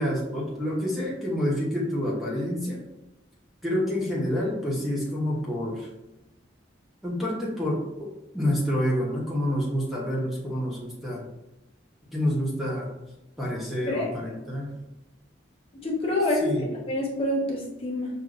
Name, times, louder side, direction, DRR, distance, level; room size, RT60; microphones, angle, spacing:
voice 1, 0.0-2.8 3.6-5.9 7.0-8.1 8.3-11.3 12.1-12.9 13.4-14.7 16.4-16.7, equal, ahead, -5 dB, 0.8 m, -28 dB
voice 2, 15.7-18.1, left 1 dB, 30° left, -3 dB, 0.9 m, -27 dB
6.1 x 2.7 x 2.4 m, 0.96 s
head